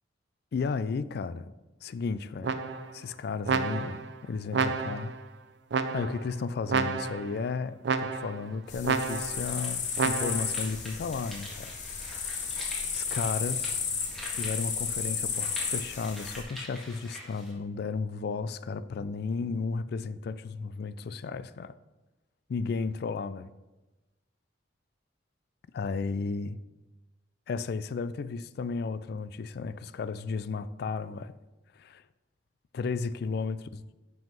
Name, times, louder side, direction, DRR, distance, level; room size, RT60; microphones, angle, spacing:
voice 1, 0.5-1.5 1.8-2.6 2.9-5.1 5.9-11.7 12.1-12.3 12.9-13.8 14.4-21.8 22.5-23.5 25.7-26.6 27.5-31.3 31.7-32.0 32.7-33.9, left 4 dB, 60° left, 0.3 m, -34 dB
sound 1, 2.4-3.0 3.5-4.1 4.5-5.2 5.7-6.3 6.7-7.3 7.8-8.4 8.8-9.5 10.0-10.6, right 4 dB, 65° right, 0.5 m, -30 dB
sound 2, 8.7-16.4, left 6 dB, 40° left, 0.9 m, -33 dB
sound 3, 9.2-17.5, equal, ahead, 1.7 m, -46 dB
5.6 x 5.2 x 5.4 m
head